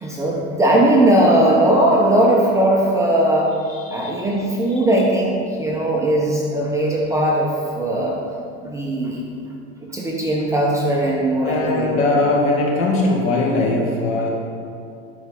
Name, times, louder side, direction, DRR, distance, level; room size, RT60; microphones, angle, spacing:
voice 1, 0.0-3.5 3.9-8.2 8.6-9.2 9.8-12.0, right 1 dB, 10° right, -3 dB, 1.0 m, -18 dB
voice 2, 3.7-4.1 4.7-4.8 11.4-14.3, left 2 dB, 40° left, -2 dB, 2.3 m, -20 dB
12.0 x 4.8 x 5.6 m, 2.4 s
supercardioid pair, 130°, 32 cm